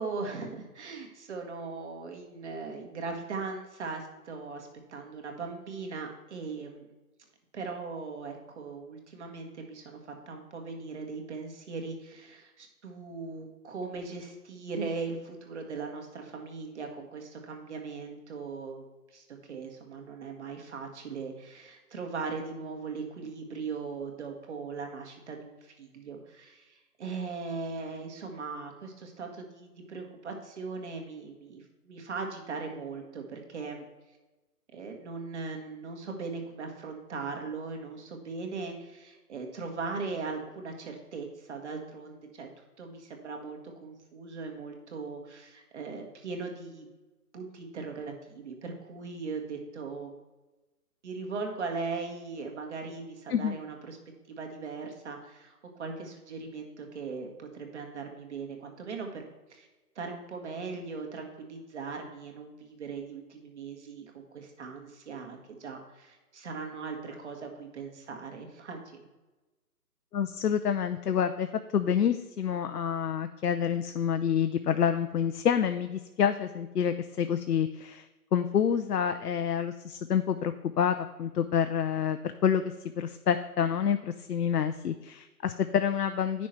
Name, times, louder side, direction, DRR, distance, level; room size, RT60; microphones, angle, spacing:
voice 1, 0.0-6.9 7.5-10.0 10.3-18.9 19.1-33.8 34.7-42.5 42.8-46.9 47.3-50.1 51.0-54.0 54.3-59.2 59.5-59.7 60.0-69.0, right 4 dB, 45° right, 2 dB, 1.7 m, -39 dB
voice 2, 70.1-71.5 71.7-78.1 78.3-86.5, left 8 dB, 80° left, 9 dB, 0.7 m, -28 dB
9.4 x 6.2 x 4.4 m, 1.1 s
hypercardioid pair, 160°, 47 cm